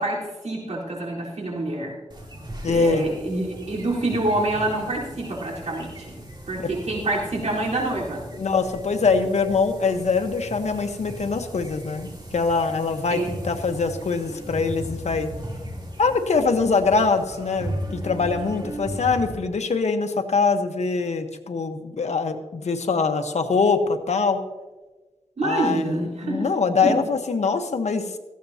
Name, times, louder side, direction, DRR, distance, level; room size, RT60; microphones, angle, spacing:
voice 1, 0.0-2.0 2.7-6.2 6.5-8.2 13.1-13.3 25.4-26.6 26.8-27.0, right 2 dB, 75° right, -4 dB, 4.1 m, -26 dB
sound 1, 2.1-19.3, right 1 dB, 40° right, 3.2 m, -37 dB
voice 2, 2.6-3.1 6.6-6.7 8.4-15.3 16.0-24.4 25.4-28.1, left 4 dB, 80° left, 6 dB, 1.2 m, -23 dB
18.0 x 15.0 x 2.9 m, 1.2 s
wide cardioid pair, 70°, 11 cm